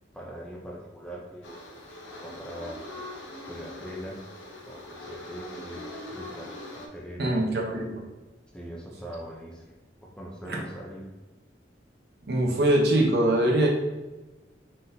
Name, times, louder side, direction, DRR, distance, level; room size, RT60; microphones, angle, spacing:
voice 1, 0.1-2.8 3.4-4.3 4.6-7.4 8.5-9.7 10.0-11.1, equal, 5° left, -3 dB, 0.5 m, -42 dB
sound 1, 1.4-6.9, left 1 dB, 85° left, 0.8 m, -42 dB
voice 2, 7.2-8.0 10.4-10.6 12.2-13.7, right 1 dB, 60° right, -1 dB, 0.8 m, -23 dB
4.1 x 3.7 x 2.7 m, 1.2 s
head